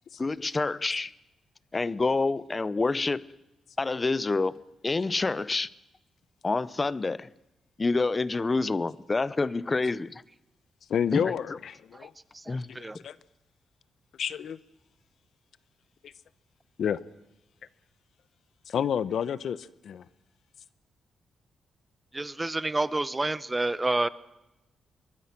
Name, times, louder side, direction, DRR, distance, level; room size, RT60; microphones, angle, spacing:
voice 1, 0.2-1.1 1.7-3.3 3.8-4.5 4.8-5.7 6.4-7.3 7.8-10.2 11.1-11.3 12.5-12.7, left 3 dB, 25° left, 0.7 m, -27 dB
voice 2, 10.9-11.7 12.0-12.1 12.7-13.2 14.2-14.6 16.0-16.1 16.8-17.0 18.7-20.0, left 8 dB, 70° left, 0.9 m, -29 dB
voice 3, 12.3-13.0 22.1-24.1, right 2 dB, 15° right, 0.8 m, -29 dB
24.0 x 22.5 x 6.0 m
cardioid pair, 110°, 0 cm